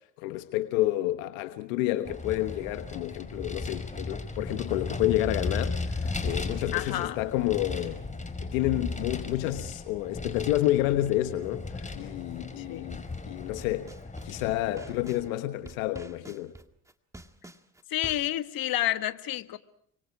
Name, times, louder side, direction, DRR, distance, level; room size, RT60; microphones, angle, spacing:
voice 1, 0.2-8.0 8.4-13.9 14.2-16.5, left 15 dB, 85° left, 1.3 m, -29 dB
Vehicle, 2.0-15.3, left 3 dB, 20° left, 5.0 m, -36 dB
voice 2, 6.7-7.2 12.6-12.9 17.9-19.6, left 13 dB, 60° left, 1.6 m, -30 dB
sound 1, 13.4-15.2 15.7-18.4, right 1 dB, 10° right, 1.9 m, -47 dB
29.5 x 25.0 x 4.8 m
hypercardioid pair, 65°, 39 cm